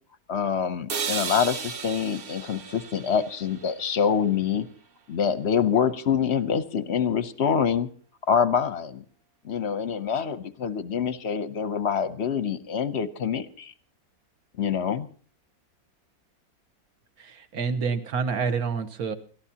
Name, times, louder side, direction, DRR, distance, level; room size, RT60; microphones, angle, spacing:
voice 1, 0.3-4.7 5.1-7.9 8.3-9.0 9.4-13.7 14.6-15.1, left 7 dB, 50° left, 12 dB, 0.9 m, -25 dB
sound 1, 0.9-4.9, right 5 dB, 40° right, 0.8 m, -35 dB
voice 2, 17.2-19.2, right 5 dB, 60° right, 10 dB, 1.6 m, -28 dB
29.5 x 13.5 x 2.9 m, 0.43 s
omnidirectional pair, 1.9 m